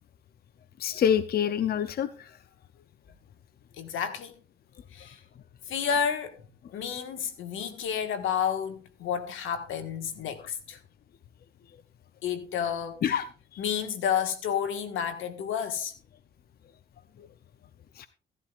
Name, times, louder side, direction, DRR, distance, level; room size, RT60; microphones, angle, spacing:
voice 1, 0.8-2.3 13.0-13.2 13.5-13.6 18.0-18.1, left 9 dB, 50° left, 0.6 m, -26 dB
voice 2, 3.8-4.3 4.9-5.2 5.7-6.4 6.7-10.8 12.2-13.0 13.6-15.9, left 8 dB, 85° left, 1.6 m, -30 dB
16.0 x 11.5 x 2.4 m
cardioid pair, 90°, 20 cm